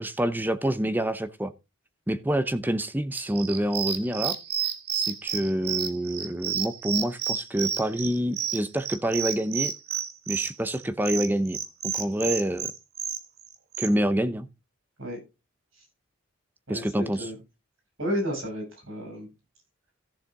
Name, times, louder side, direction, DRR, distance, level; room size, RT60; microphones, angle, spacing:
voice 1, 0.0-1.5 2.1-4.3 4.9-9.7 10.3-11.6 11.8-12.7 13.8-14.5 16.7-17.3, right 1 dB, 10° right, 0.7 m, -27 dB
sound 1, 3.1-13.9, right 8 dB, 50° right, 1.5 m, -30 dB
voice 2, 16.7-17.4 18.0-19.3, equal, 75° right, 7.2 m, -32 dB
14.5 x 6.8 x 3.7 m
head